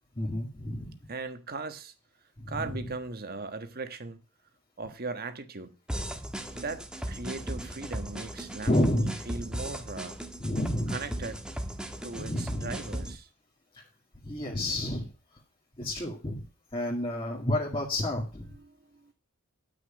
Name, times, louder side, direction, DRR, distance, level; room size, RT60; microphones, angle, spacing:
voice 1, 0.2-0.9 2.4-2.7 8.7-9.2 10.4-10.9 12.1-12.8 13.7-13.8 14.2-15.1 15.8-16.5 16.7-18.5, left 1 dB, 25° left, 2.3 m, -30 dB
voice 2, 1.1-1.9 2.5-4.2 4.8-5.7 6.5-10.2 10.9-11.4 12.0-13.3 18.6-19.1, right 3 dB, 45° right, 1.4 m, -38 dB
sound 1, 5.9-13.2, right 1 dB, 5° right, 1.3 m, -37 dB
11.0 x 6.4 x 8.8 m
head